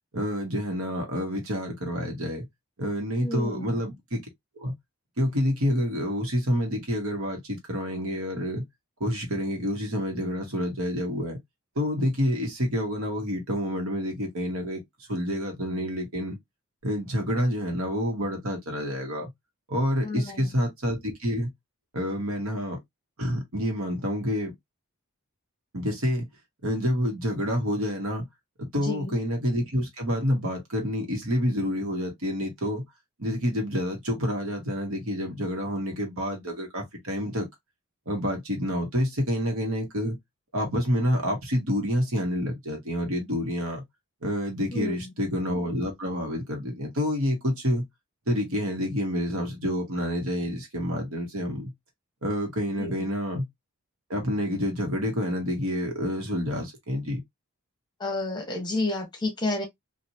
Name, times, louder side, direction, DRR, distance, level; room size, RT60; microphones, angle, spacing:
voice 1, 0.1-2.5 2.8-4.2 4.6-4.7 5.2-8.6 9.0-11.4 11.7-14.8 15.1-16.4 16.8-19.3 19.7-21.5 21.9-22.8 23.2-24.5 25.7-26.3 26.6-28.3 28.6-32.8 33.2-37.5 38.1-40.2 40.5-43.8 44.2-47.8 48.3-51.7 52.2-53.5 54.1-57.2, equal, 70° right, 1.3 m, -28 dB
voice 2, 3.2-3.7 20.0-20.4 28.9-29.1 44.7-44.9 52.8-53.0 58.0-59.6, left 2 dB, 20° left, 1.1 m, -30 dB
3.0 x 2.5 x 2.6 m
head